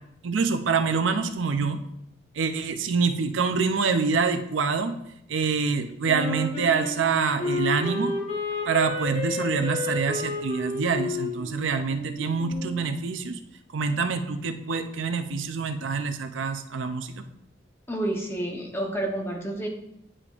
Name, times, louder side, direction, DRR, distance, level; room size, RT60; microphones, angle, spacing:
voice 1, 0.2-1.8 2.4-5.0 5.3-8.1 8.7-13.4 13.7-17.2, right 5 dB, 85° right, 8 dB, 0.5 m, -26 dB
Wind instrument woodwind instrument, 6.1-12.8, left 2 dB, 35° left, 1.0 m, -31 dB
voice 2, 17.9-19.7, right 1 dB, 15° left, 1 dB, 0.8 m, -29 dB
9.7 x 5.0 x 2.5 m, 0.78 s
head